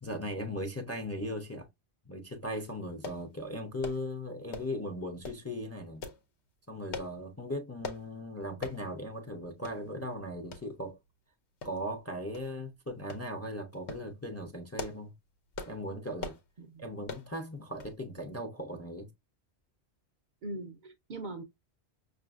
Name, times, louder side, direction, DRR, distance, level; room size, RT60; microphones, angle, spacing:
voice 1, 0.0-1.7 2.1-6.1 6.7-11.0 11.6-15.2 15.7-16.4 16.8-19.1, equal, 20° left, 0.4 m, -38 dB
sound 1, 3.0-3.2 3.8-4.0 4.5-4.8 5.2-5.4 6.0-6.2 6.9-7.1 7.8-8.0 8.6-8.8 9.2-9.3 9.6-9.8 10.5-10.7 11.6-12.0 12.3-12.5 13.1-13.3 13.7-14.1 14.6-15.1 15.5-15.8 16.2-16.4 17.1-17.3 17.8-18.0 18.3-18.4, left 4 dB, 85° left, 1.0 m, -41 dB
voice 2, 20.4-21.4, right 2 dB, 55° right, 0.6 m, -41 dB
5.5 x 2.5 x 2.3 m
omnidirectional pair, 1.1 m